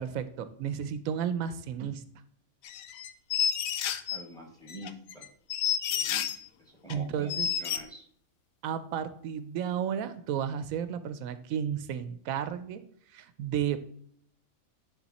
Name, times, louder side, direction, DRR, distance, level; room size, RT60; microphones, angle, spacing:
voice 1, 0.0-2.0 6.9-7.5 8.6-12.8 13.1-13.9, right 8 dB, 85° right, 12 dB, 1.0 m, -33 dB
sound 1, 2.6-4.2 4.7-6.4 6.9-7.0 7.3-7.8, left 9 dB, 80° left, 1.0 m, -30 dB
voice 2, 4.1-5.3 5.9-6.3 6.6-8.1, right 1 dB, 5° left, 1 dB, 1.6 m, -46 dB
9.9 x 3.8 x 4.1 m, 0.63 s
omnidirectional pair, 1.4 m